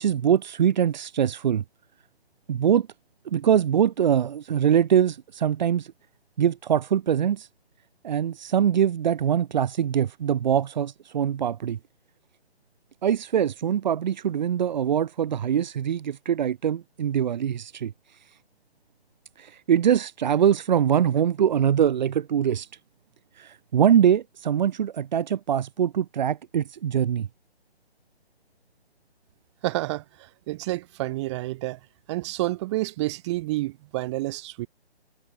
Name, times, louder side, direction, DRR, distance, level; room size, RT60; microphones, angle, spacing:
voice 1, 0.0-1.6 2.5-2.9 3.3-5.9 6.4-7.5 8.0-11.8 13.0-18.4 19.4-22.7 23.3-27.3, right 9 dB, 40° right, 5.7 m, -23 dB
voice 2, 29.6-30.0 30.5-31.8 32.1-34.7, right 18 dB, 25° right, 5.3 m, -29 dB
figure-of-eight pair, 150°, 33 cm